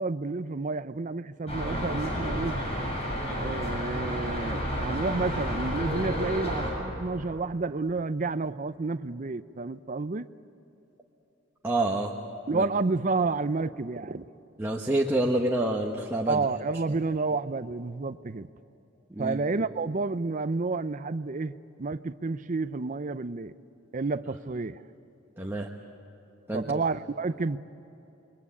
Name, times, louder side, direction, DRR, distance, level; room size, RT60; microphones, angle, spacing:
voice 1, 0.0-2.6 3.4-10.3 12.5-14.3 16.3-18.5 19.2-23.5 23.9-24.8 26.5-27.6, right 3 dB, 40° right, 0.6 m, -30 dB
sound 1, 1.5-6.7, equal, 30° left, 7.6 m, -31 dB
voice 2, 11.6-12.1 12.5-12.6 14.6-16.4 19.1-19.4 25.4-25.7 26.5-26.8, right 1 dB, 10° right, 1.2 m, -27 dB
28.5 x 23.0 x 8.5 m
head